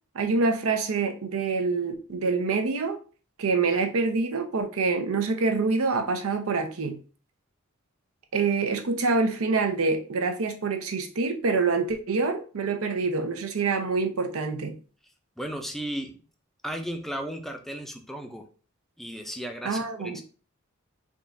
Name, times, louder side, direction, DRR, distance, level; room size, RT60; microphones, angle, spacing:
voice 1, 0.1-3.0 3.4-7.0 8.3-14.8 19.6-20.2, right 4 dB, 80° right, 6 dB, 0.6 m, -26 dB
voice 2, 15.4-16.2 16.6-18.5 19.0-20.2, equal, ahead, 3 dB, 0.4 m, -35 dB
3.6 x 2.5 x 4.0 m, 0.37 s
head